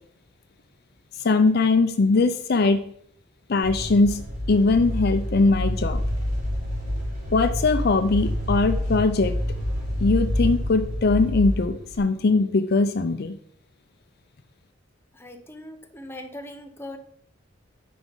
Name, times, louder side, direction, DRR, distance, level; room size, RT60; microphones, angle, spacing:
voice 1, 1.2-2.8 3.5-4.2 4.5-6.0 7.3-9.3 10.0-13.4, left 3 dB, 55° left, 9 dB, 0.6 m, -21 dB
sound 1, 3.6-12.0, left 1 dB, 45° right, 3.7 m, -28 dB
voice 2, 15.1-17.0, left 1 dB, 15° left, 4 dB, 1.0 m, -40 dB
9.5 x 5.2 x 5.4 m, 0.65 s
head